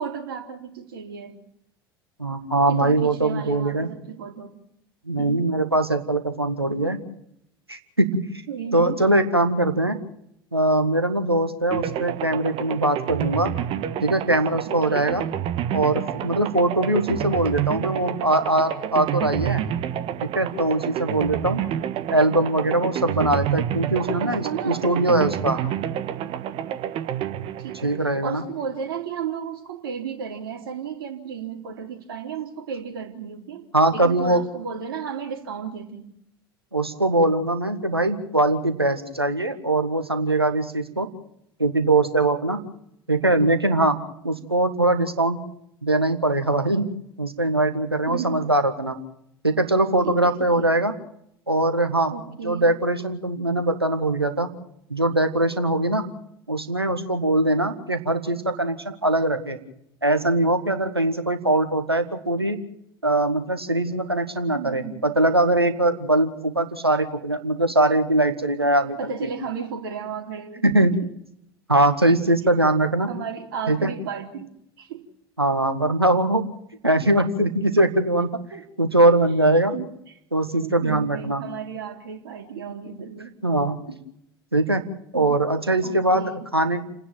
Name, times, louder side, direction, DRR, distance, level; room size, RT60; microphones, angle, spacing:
voice 1, 0.0-1.4 2.7-4.5 5.2-5.4 8.5-9.0 14.6-15.1 24.0-24.8 25.5-25.8 27.6-33.6 33.9-36.1 48.0-48.4 50.0-50.7 52.1-52.7 64.5-65.0 69.0-70.6 73.1-74.5 74.8-75.0 78.5-78.6 79.7-79.9 80.6-83.4 85.1-85.4 85.8-86.5, right 7 dB, 65° right, 3 dB, 3.3 m, -34 dB
voice 2, 2.2-3.9 5.1-7.0 7.7-8.1 8.7-10.0 10.5-13.5 14.0-15.2 15.7-19.6 20.2-21.6 22.1-25.6 27.8-28.4 33.7-34.4 36.7-41.1 41.6-42.6 43.1-44.0 44.2-45.4 45.8-46.9 47.2-49.0 49.4-50.9 51.5-52.1 52.4-54.5 54.9-56.0 56.5-59.6 60.0-62.6 63.0-69.0 69.2-69.3 70.6-70.9 71.7-73.1 73.7-73.9 75.4-76.4 76.8-78.4 78.8-79.7 80.3-81.4 83.4-83.8 84.5-84.8 85.1-86.8, right 2 dB, 90° right, 8 dB, 1.7 m, -21 dB
sound 1, 11.7-28.6, right 11 dB, 45° right, 1.5 m, -29 dB
30.0 x 10.0 x 9.1 m, 0.75 s
figure-of-eight pair, 70°, 13 cm